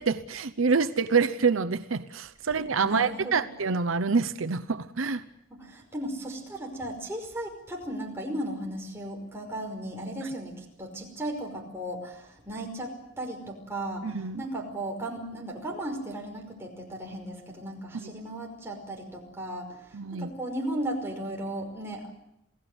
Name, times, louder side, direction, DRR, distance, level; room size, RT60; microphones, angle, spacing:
voice 1, 0.0-5.2 10.2-10.3 14.0-14.4 17.9-18.1 19.9-20.3, right 5 dB, 85° right, 10 dB, 0.8 m, -27 dB
voice 2, 2.8-3.3 5.5-14.1 14.4-22.1, right 1 dB, 10° right, 0 dB, 5.4 m, -36 dB
28.0 x 17.5 x 8.1 m, 0.82 s
head